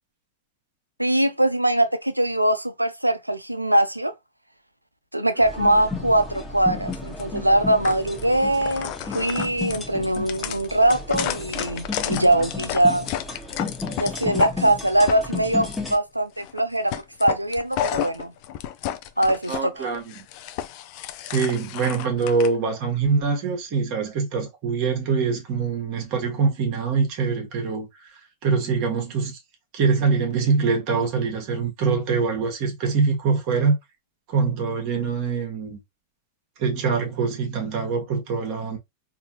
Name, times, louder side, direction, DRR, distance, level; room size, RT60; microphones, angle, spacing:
voice 1, 1.0-4.1 5.1-13.1 14.0-16.9 17.2-18.3 19.2-19.9, right 1 dB, 85° right, 0.5 m, -22 dB
sound 1, 5.4-16.0, left 3 dB, 10° left, 1.3 m, -33 dB
sound 2, 6.9-7.2 7.8-8.2 8.6-14.5 14.9-15.9 16.4-16.6 16.9-19.6 19.9-22.5, left 11 dB, 45° left, 0.5 m, -31 dB
voice 2, 19.5-20.2 21.3-28.1 28.4-29.4 29.7-33.8 34.3-35.8 36.6-38.8, right 5 dB, 45° right, 1.1 m, -24 dB
4.5 x 2.7 x 2.8 m
figure-of-eight pair, 90°, 0 cm